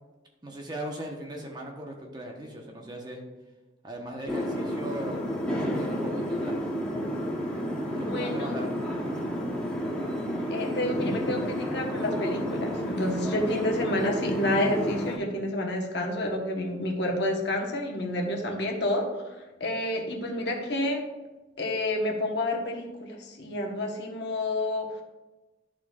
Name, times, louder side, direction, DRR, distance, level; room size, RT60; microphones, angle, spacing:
voice 1, 0.4-3.2 3.8-5.2 5.5-6.7 8.0-8.7, right 1 dB, 20° right, 1 dB, 1.0 m, -38 dB
sound 1, 4.3-15.2, equal, 5° left, 1.0 m, -31 dB
voice 2, 7.9-8.6 10.5-21.0 21.6-25.0, left 1 dB, 60° left, 1 dB, 1.2 m, -29 dB
12.0 x 4.4 x 2.4 m, 1.1 s
head